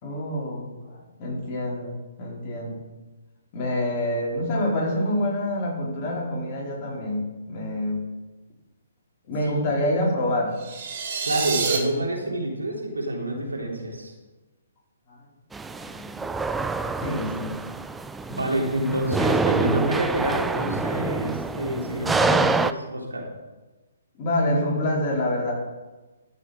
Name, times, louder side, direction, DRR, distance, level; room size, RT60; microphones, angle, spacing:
voice 1, 0.0-2.8 3.5-8.0 9.3-10.6 15.1-15.2 15.7-16.2 17.0-17.6 24.2-25.5, left 1 dB, 35° left, -4 dB, 4.3 m, -27 dB
sound 1, 10.6-11.8, right 5 dB, 45° right, 2.4 m, -27 dB
voice 2, 11.2-14.1 18.3-23.3, right 1 dB, 85° right, -1 dB, 3.2 m, -27 dB
sound 2, 15.5-22.7, right 3 dB, 5° right, 0.4 m, -26 dB
13.5 x 6.6 x 5.1 m, 1.2 s
figure-of-eight pair, 130°, 0 cm